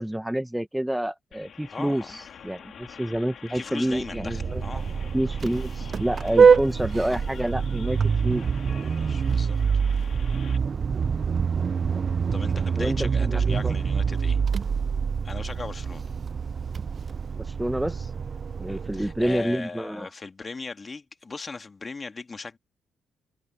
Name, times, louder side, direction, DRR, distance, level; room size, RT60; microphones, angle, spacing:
voice 1, 0.0-4.8 5.1-8.4 12.8-13.7 17.4-18.1 18.6-20.1, right 1 dB, 5° right, 0.9 m, -28 dB
sound 1, 1.3-10.6, left 8 dB, 60° left, 3.0 m, -46 dB
voice 2, 1.7-2.2 3.5-5.1 7.1-7.2 8.8-9.6 12.3-14.4 15.2-16.0 18.7-22.6, left 4 dB, 30° left, 1.9 m, -38 dB
Vehicle horn car horn honking, 4.0-19.4, right 6 dB, 45° right, 0.4 m, -25 dB
cardioid pair, 90°, 0 cm